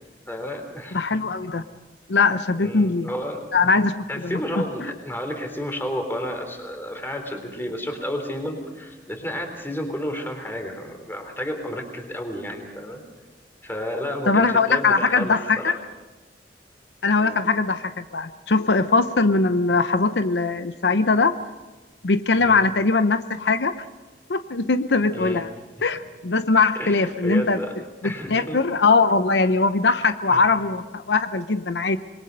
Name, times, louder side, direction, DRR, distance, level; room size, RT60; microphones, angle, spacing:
voice 1, 0.3-1.0 2.6-3.5 4.1-13.0 13.6-15.8 17.1-17.4 22.4-22.6 25.1-25.4 26.8-27.7 28.0-28.6 30.3-30.5, equal, 15° left, 4 dB, 3.6 m, -31 dB
voice 2, 0.9-1.6 2.1-3.1 3.5-4.6 14.3-15.8 17.0-21.4 22.0-23.8 24.3-25.5 25.8-27.6 28.0-32.0, left 4 dB, 80° left, 11 dB, 0.8 m, -21 dB
26.5 x 22.0 x 5.4 m, 1.2 s
head